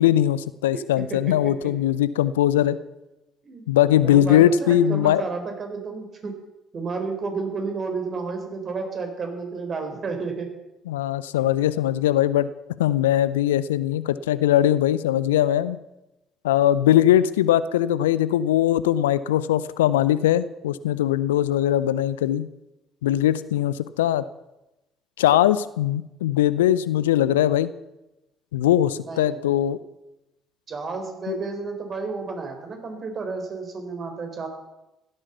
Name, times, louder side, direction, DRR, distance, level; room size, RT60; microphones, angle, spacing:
voice 1, 0.0-2.8 3.7-5.2 10.9-12.5 12.8-15.8 16.4-22.5 23.0-24.2 25.2-27.7 28.5-29.8 31.3-31.4, left 12 dB, 75° left, 16 dB, 0.5 m, -20 dB
voice 2, 3.4-6.3 6.7-10.5 29.0-29.4 30.7-34.5, right 4 dB, 40° right, 5 dB, 3.9 m, -31 dB
15.5 x 12.0 x 6.9 m, 0.96 s
figure-of-eight pair, 50°, 0 cm